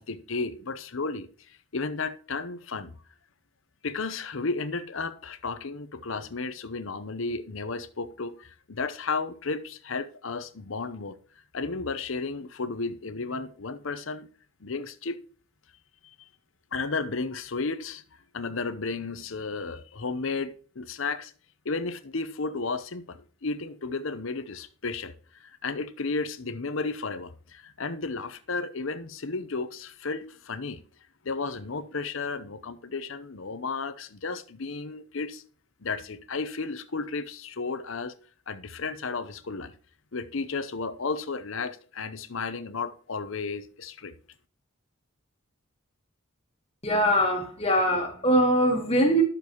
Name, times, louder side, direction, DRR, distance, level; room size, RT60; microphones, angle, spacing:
voice 1, 0.0-2.9 3.8-11.2 11.5-14.3 14.6-15.2 16.0-16.3 16.7-18.0 18.3-21.3 21.6-30.8 31.2-35.4 35.8-38.1 38.5-39.7 40.1-44.1, left 4 dB, 65° left, 0.8 m, -33 dB
voice 2, 46.8-49.2, equal, 30° left, 1.5 m, -22 dB
11.0 x 6.8 x 3.0 m
head